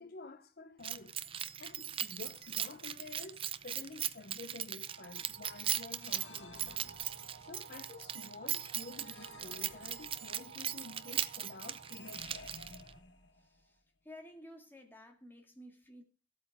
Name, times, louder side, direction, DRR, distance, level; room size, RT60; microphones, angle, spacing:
voice 1, 0.0-6.9 7.4-12.7, left 3 dB, 55° left, 0.7 m, -50 dB
Keys jangling, 0.8-13.0, right 10 dB, 30° right, 0.5 m, -39 dB
sound 1, 4.9-13.5, right 7 dB, 75° right, 0.6 m, -56 dB
sound 2, 5.9-7.6 8.9-10.6 11.8-13.6, left 4 dB, 70° left, 1.1 m, -55 dB
voice 2, 13.4-16.0, left 1 dB, 10° left, 2.0 m, -54 dB
14.5 x 8.4 x 3.5 m
head